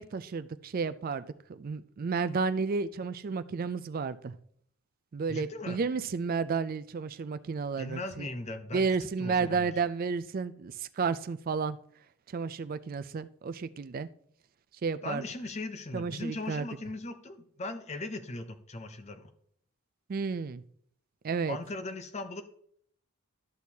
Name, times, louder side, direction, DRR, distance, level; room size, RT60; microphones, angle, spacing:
voice 1, 0.0-4.3 5.1-8.3 8.7-11.8 12.3-14.1 14.8-15.2 15.9-16.7 20.1-20.6 21.2-21.6, right 5 dB, 40° right, 13 dB, 0.3 m, -32 dB
voice 2, 5.3-5.8 7.8-8.8 9.2-9.7 15.0-19.3 21.5-22.4, left 2 dB, 30° left, 9 dB, 0.6 m, -38 dB
12.0 x 6.2 x 2.8 m, 0.65 s
head